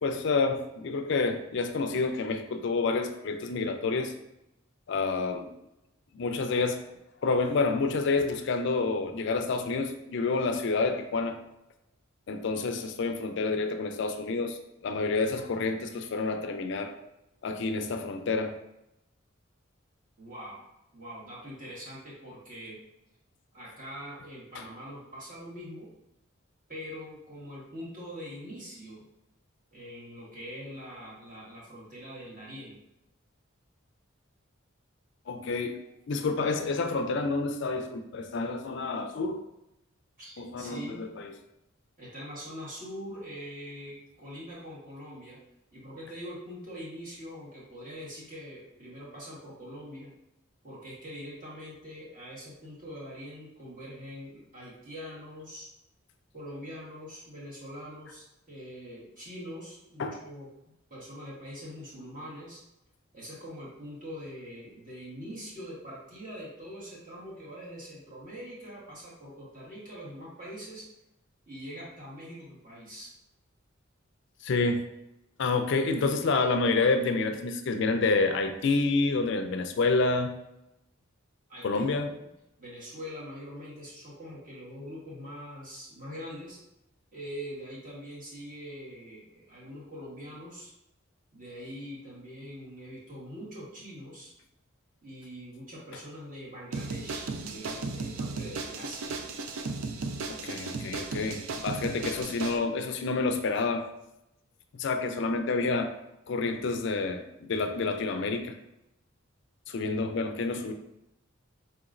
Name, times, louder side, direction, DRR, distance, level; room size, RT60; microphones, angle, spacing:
voice 1, 0.0-4.1 4.9-5.5 6.1-6.8 7.2-11.4 12.3-16.9 17.4-18.5 24.5-24.6 35.3-35.8 36.1-39.4 40.4-41.3 60.0-60.2 74.4-74.8 75.4-80.3 81.6-82.1 100.3-103.8 104.7-105.9 106.3-108.5 109.7-110.7, left 3 dB, 60° left, 7 dB, 0.4 m, -28 dB
voice 2, 20.2-20.6 20.9-22.8 23.5-25.9 26.7-29.0 29.7-32.8 40.2-41.1 42.0-45.4 45.7-50.1 50.6-55.7 56.3-60.5 60.9-62.6 63.1-70.8 71.5-73.1 81.5-82.3 82.6-86.6 87.1-90.7 91.3-94.3 95.0-99.1, equal, 40° right, -7 dB, 1.5 m, -43 dB
sound 1, 96.7-102.6, right 3 dB, 85° right, 0.4 m, -35 dB
4.4 x 3.0 x 2.5 m, 0.86 s
head